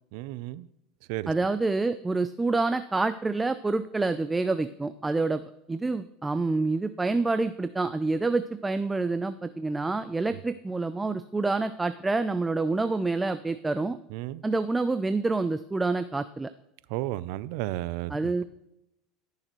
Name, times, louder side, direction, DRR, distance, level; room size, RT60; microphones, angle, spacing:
voice 1, 0.1-0.7 1.1-1.3 14.1-14.4 16.9-18.4, right 16 dB, 70° right, 18 dB, 0.4 m, -33 dB
voice 2, 1.3-5.4 5.7-14.0 14.4-16.5 18.1-18.4, right 3 dB, 15° right, 11 dB, 0.4 m, -27 dB
14.0 x 6.6 x 3.1 m, 0.86 s
supercardioid pair, 105°, 0 cm